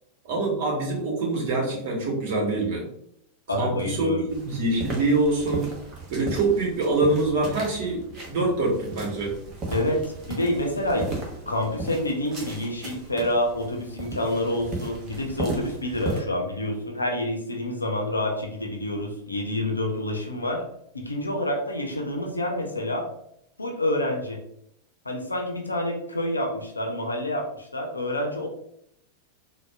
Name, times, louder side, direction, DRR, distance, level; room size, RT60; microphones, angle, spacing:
voice 1, 0.2-2.9 3.6-5.7 6.1-9.4, right 2 dB, 50° right, 0 dB, 1.0 m, -25 dB
voice 2, 3.5-4.3 9.7-11.1 11.5-20.6 20.9-23.1 23.6-24.4 25.1-28.5, left 1 dB, 80° left, 2 dB, 0.6 m, -28 dB
sound 1, 4.3-16.2, right 2 dB, 30° right, 0.9 m, -36 dB
4.1 x 2.2 x 2.3 m, 0.73 s
figure-of-eight pair, 90°, 0 cm